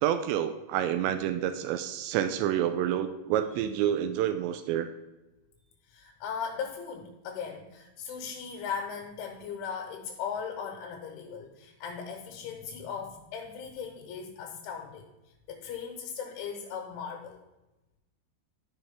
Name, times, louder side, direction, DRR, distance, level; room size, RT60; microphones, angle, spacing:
voice 1, 0.0-4.9, right 10 dB, 90° right, 9 dB, 2.5 m, -28 dB
voice 2, 5.9-15.1 15.5-17.4, left 6 dB, 80° left, 1 dB, 3.4 m, -38 dB
13.0 x 5.6 x 3.5 m, 1.0 s
omnidirectional pair, 5.6 m